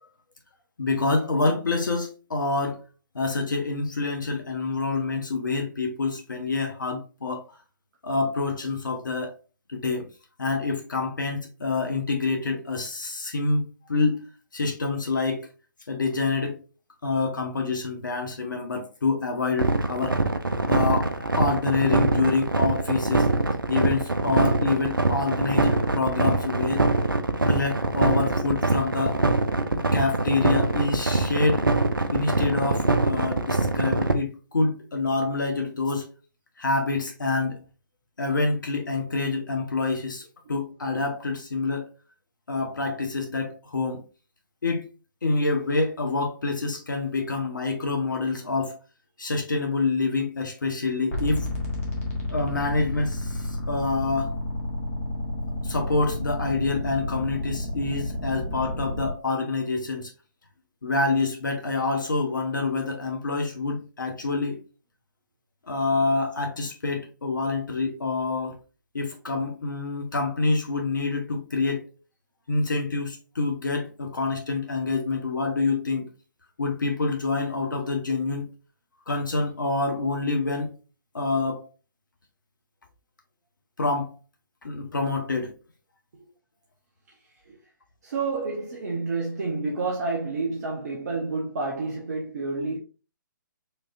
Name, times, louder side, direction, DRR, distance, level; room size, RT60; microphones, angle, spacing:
voice 1, 0.8-2.8 3.1-7.4 8.0-9.3 9.7-10.1 10.4-14.3 14.5-15.5 15.9-16.6 17.0-20.2 20.7-23.3 23.7-26.9 27.4-29.2 29.7-31.7 32.1-36.1 36.6-37.6 38.2-41.9 42.5-44.0 44.6-44.8 45.2-48.8 49.2-51.5 52.3-54.4 55.6-60.1 60.8-64.6 65.6-68.6 68.9-71.8 72.5-76.1 76.6-78.4 79.1-80.7 81.1-81.7 83.8-84.1 84.6-85.5, left 3 dB, 65° left, 1.1 m, -27 dB
sound 1, 19.6-34.1, right 3 dB, 80° right, 0.7 m, -23 dB
sound 2, 51.1-59.1, left 1 dB, 40° left, 1.6 m, -31 dB
voice 2, 88.0-92.8, right 3 dB, 50° right, 1.1 m, -29 dB
5.0 x 3.0 x 2.6 m
figure-of-eight pair, 135°, 11 cm